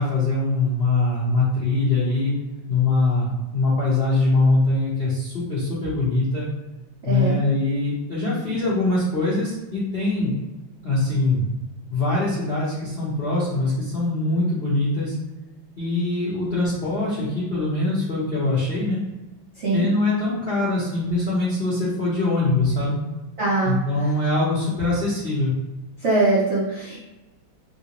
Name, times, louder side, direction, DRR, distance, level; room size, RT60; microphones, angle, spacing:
voice 1, 0.0-2.3 2.7-6.5 7.0-10.3 10.8-11.4 11.9-15.1 15.8-19.0 19.7-23.0 23.6-25.5, left 2 dB, 60° left, -9 dB, 0.6 m, -22 dB
voice 2, 7.0-7.4 19.6-19.9 23.4-23.8 26.0-27.0, right 2 dB, 75° right, -7 dB, 0.6 m, -22 dB
3.2 x 2.7 x 2.9 m, 1.1 s
omnidirectional pair, 2.2 m